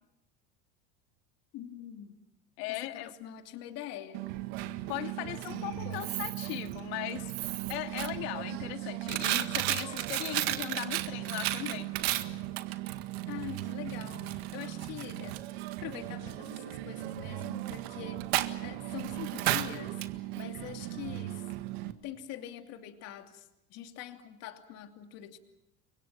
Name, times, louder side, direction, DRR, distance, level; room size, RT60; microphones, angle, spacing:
voice 1, 1.5-2.2 2.7-4.3 5.2-6.1 13.3-15.4 15.8-18.2 18.6-20.0 20.4-21.4 21.8-25.4, left 10 dB, 50° left, 5 dB, 2.8 m, -44 dB
voice 2, 2.6-3.1 4.9-7.3 7.7-11.9, left 14 dB, 70° left, 7 dB, 2.2 m, -38 dB
Coin (dropping), 4.1-21.9, right 15 dB, 75° right, 1.8 m, -35 dB
29.5 x 24.0 x 6.0 m, 0.84 s
supercardioid pair, 140°, 32 cm